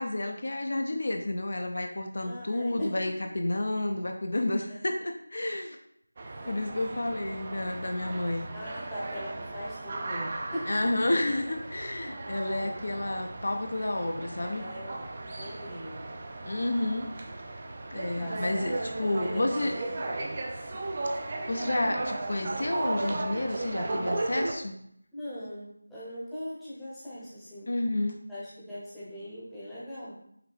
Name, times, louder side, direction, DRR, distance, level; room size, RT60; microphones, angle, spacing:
voice 1, 0.0-5.8 6.5-8.5 10.7-14.6 16.4-17.1 17.9-19.7 21.5-24.8 27.7-28.2, left 1 dB, 55° left, 4 dB, 0.5 m, -30 dB
voice 2, 2.2-3.0 4.7-4.8 6.4-6.7 8.2-10.7 12.4-12.8 14.4-16.1 18.2-20.1 25.1-27.7 28.3-30.1, equal, ahead, -12 dB, 0.8 m, -40 dB
sound 1, 6.2-24.5, right 2 dB, 30° right, 0.4 m, -36 dB
5.7 x 2.6 x 3.4 m, 0.71 s
figure-of-eight pair, 170°, 0 cm